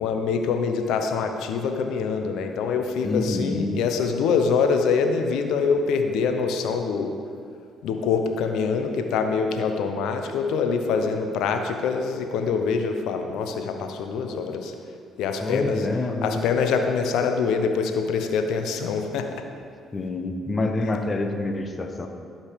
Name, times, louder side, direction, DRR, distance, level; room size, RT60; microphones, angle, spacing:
voice 1, 0.0-7.1 7.8-14.7 15.2-15.9 16.2-19.3, left 5 dB, 75° left, 5 dB, 0.9 m, -24 dB
voice 2, 3.0-3.8 15.4-16.5 19.9-22.1, left 2 dB, 35° left, 5 dB, 1.1 m, -27 dB
12.0 x 5.3 x 5.2 m, 2.3 s
supercardioid pair, 60°, 0 cm